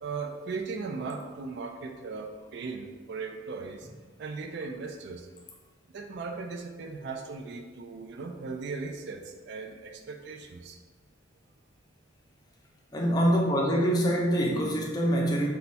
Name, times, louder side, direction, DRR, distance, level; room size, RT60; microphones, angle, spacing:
voice 1, 0.0-3.9 4.2-5.3 5.9-10.8, right 4 dB, 55° right, 5 dB, 0.3 m, -38 dB
voice 2, 12.9-15.5, equal, 20° left, -1 dB, 0.4 m, -25 dB
4.3 x 2.2 x 4.1 m, 1.4 s
head